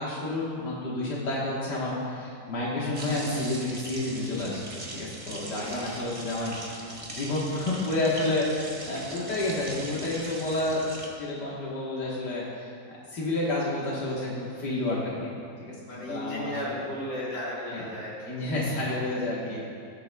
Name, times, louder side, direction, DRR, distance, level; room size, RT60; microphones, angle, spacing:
voice 1, 0.0-4.6 4.9-10.9 11.1-15.3 15.6-16.8 17.7-17.8 18.3-19.6, left 2 dB, 85° left, -6 dB, 2.0 m, -30 dB
sound 1, 2.9-11.1, right 1 dB, 25° right, 1.0 m, -41 dB
voice 2, 5.5-6.0 15.9-18.1 19.4-19.7, left 1 dB, 50° left, -7 dB, 3.1 m, -35 dB
18.0 x 8.4 x 2.3 m, 2.4 s
omnidirectional pair, 1.8 m